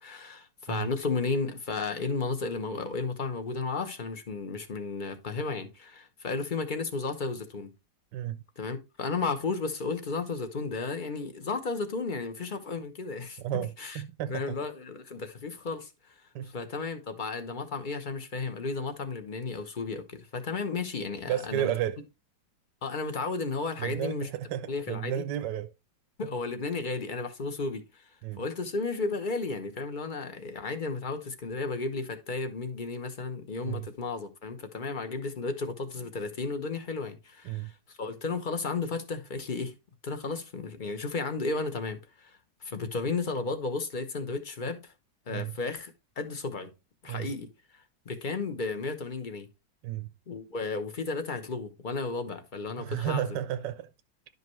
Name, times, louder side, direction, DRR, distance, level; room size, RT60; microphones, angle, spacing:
voice 1, 0.0-7.7 8.6-14.0 14.3-16.1 16.4-21.7 22.8-24.3 24.7-25.2 26.2-28.1 28.4-39.7 40.0-44.9 45.3-46.7 47.0-47.5 48.1-49.5 50.3-53.4, left 4 dB, 35° left, 0.8 m, -33 dB
voice 2, 13.4-14.4 16.3-16.5 21.3-22.0 23.8-25.7 28.2-28.4 33.6-33.9 37.5-37.7 45.3-45.5 47.1-47.3 49.8-50.1 52.8-53.9, right 12 dB, 80° right, 1.2 m, -32 dB
11.0 x 5.3 x 3.1 m
omnidirectional pair, 2.0 m